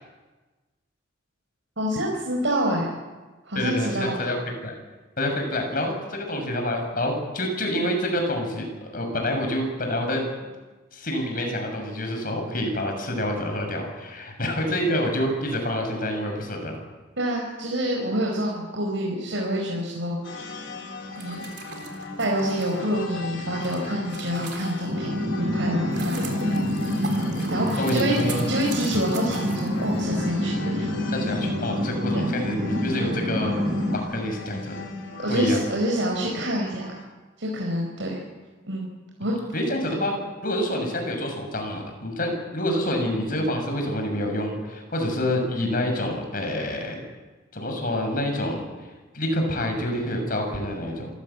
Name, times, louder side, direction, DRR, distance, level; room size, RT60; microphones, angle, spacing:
voice 1, 1.8-2.9 3.5-4.1 17.2-20.6 21.2-21.4 22.2-25.1 25.4-26.6 27.1-27.2 27.5-30.9 32.1-32.3 35.2-37.0 37.4-38.2 38.6-38.9 39.2-39.4, equal, 75° right, -2 dB, 4.9 m, -27 dB
voice 2, 3.5-4.3 4.6-4.7 5.2-10.5 10.9-16.8 27.8-28.4 31.1-33.5 33.9-34.8 35.3-35.6 39.5-40.2 40.4-47.0 47.5-48.9 49.1-51.1, left 1 dB, 50° left, 3 dB, 6.5 m, -27 dB
sound 1, 20.2-37.0, left 3 dB, 75° left, 3.9 m, -38 dB
sound 2, 21.0-25.1 25.6-30.3, right 5 dB, 60° right, 3.9 m, -40 dB
sound 3, 24.9-34.0, equal, 30° right, 6.5 m, -27 dB
27.0 x 16.5 x 8.4 m, 1.2 s
head